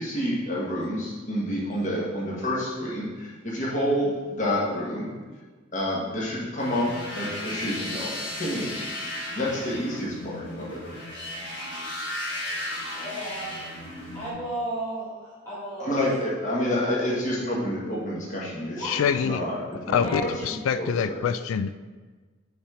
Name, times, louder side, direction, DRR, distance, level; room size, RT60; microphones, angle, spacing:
voice 1, 0.0-5.1 5.7-8.7 9.3-10.8 15.8-21.2, left 1 dB, 40° left, -5 dB, 1.5 m, -29 dB
sound 1, 6.6-14.3, left 1 dB, 60° left, 1.4 m, -35 dB
voice 2, 12.9-13.6 14.1-15.9 18.8-18.9 20.0-20.4, right 1 dB, 15° left, -13 dB, 1.7 m, -33 dB
voice 3, 18.8-19.4 19.9-21.8, left 7 dB, 90° left, 14 dB, 0.3 m, -25 dB
5.8 x 4.4 x 4.9 m, 1.4 s
head